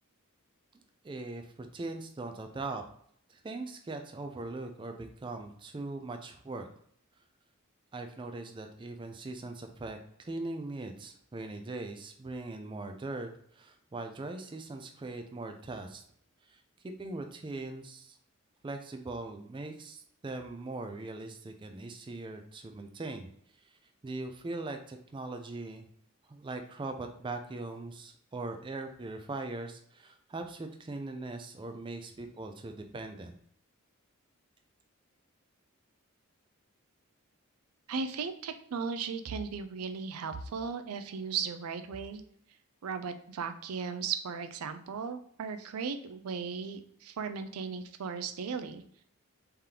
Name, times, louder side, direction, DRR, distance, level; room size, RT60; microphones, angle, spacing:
voice 1, 1.0-2.8 3.3-6.7 7.9-16.0 16.4-16.6 17.0-18.2 18.6-23.3 23.6-23.7 24.0-25.9 26.3-33.4, right 2 dB, 20° right, 6 dB, 0.3 m, -40 dB
voice 2, 37.9-42.2 42.8-48.8, right 5 dB, 85° right, 9 dB, 0.4 m, -36 dB
3.7 x 3.4 x 2.8 m, 0.65 s
head